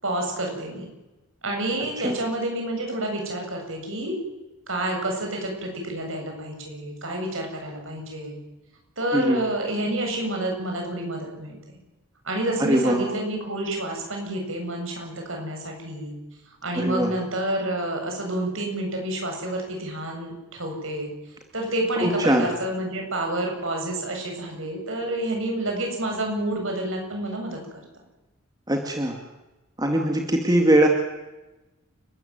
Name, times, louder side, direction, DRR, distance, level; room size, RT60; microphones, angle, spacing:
voice 1, 0.0-0.9 1.4-4.2 4.7-8.4 9.0-11.6 12.2-16.1 16.6-21.1 21.5-27.6, right 1 dB, 65° right, 2 dB, 7.9 m, -29 dB
voice 2, 12.6-13.1 16.8-17.1 22.0-22.5 28.7-29.2 29.8-30.9, right 1 dB, 20° right, 3 dB, 2.3 m, -21 dB
29.5 x 14.0 x 9.5 m, 1.1 s
head